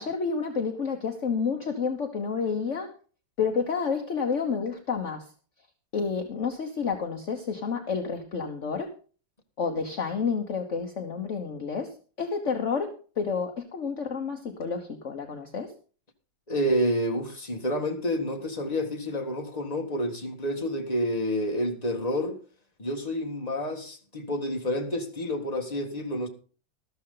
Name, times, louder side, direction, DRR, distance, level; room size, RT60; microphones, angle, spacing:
voice 1, 0.0-2.9 3.4-5.3 5.9-8.9 9.6-15.7, left 5 dB, 45° left, 1.4 m, -30 dB
voice 2, 16.5-22.4 22.8-26.3, equal, 25° left, 1.9 m, -29 dB
13.5 x 13.0 x 3.9 m
omnidirectional pair, 1.8 m